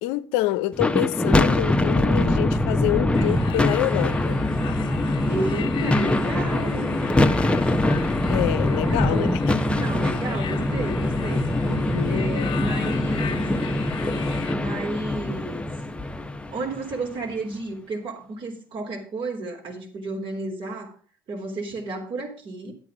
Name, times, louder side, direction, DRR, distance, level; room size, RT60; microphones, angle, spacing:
voice 1, 0.0-4.4 8.3-9.6 11.7-12.3, left 15 dB, 80° left, 0.6 m, -27 dB
sound 1, 0.7-17.1, left 1 dB, 10° left, 0.9 m, -23 dB
sound 2, 3.1-14.6, left 9 dB, 55° left, 1.0 m, -39 dB
voice 2, 5.3-7.0 8.6-9.4 9.8-11.5 12.1-13.4 14.5-15.6 16.5-20.9 21.3-22.7, right 3 dB, 55° right, 3.5 m, -32 dB
9.5 x 8.8 x 5.0 m
supercardioid pair, 70°, 10 cm